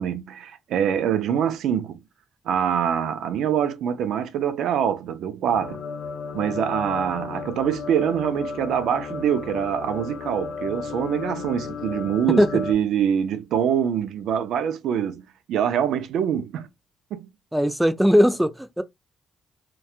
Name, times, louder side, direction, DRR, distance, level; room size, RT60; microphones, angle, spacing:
voice 1, 0.0-2.0 2.5-5.8 6.3-16.7 17.1-17.3, right 8 dB, 80° right, 0.4 m, -24 dB
sound 1, 5.5-12.7, left 5 dB, 85° left, 0.5 m, -34 dB
voice 2, 17.5-18.8, equal, 5° right, 0.3 m, -19 dB
2.7 x 2.2 x 2.3 m
cardioid pair, 90°, 0 cm